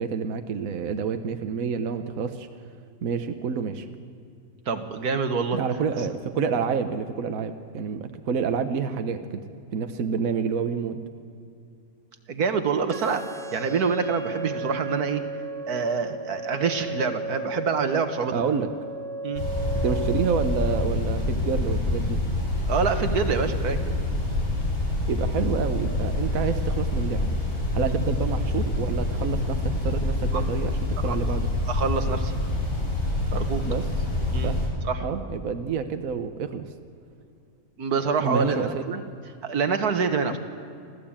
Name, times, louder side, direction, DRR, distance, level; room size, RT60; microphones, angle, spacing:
voice 1, 0.0-2.5 3.0-3.9 5.5-9.4 9.7-11.0 18.3-18.7 19.8-22.2 25.1-27.4 27.7-31.5 33.6-33.8 34.4-34.6 35.0-36.6 38.2-39.0, right 6 dB, 65° right, 8 dB, 1.4 m, -28 dB
voice 2, 4.7-5.6 12.3-15.2 15.7-18.3 19.2-19.4 22.7-23.8 27.8-27.9 30.3-30.4 31.0-31.2 31.7-32.3 33.3-33.6 34.3-34.5 34.8-35.0 37.8-38.7 39.4-40.4, right 5 dB, 85° right, 8 dB, 1.9 m, -26 dB
sound 1, 12.9-20.9, right 2 dB, 30° right, 0.9 m, -35 dB
sound 2, 19.3-34.7, left 2 dB, 80° left, 6.8 m, -26 dB
27.0 x 14.5 x 8.8 m, 2.5 s
omnidirectional pair, 1.6 m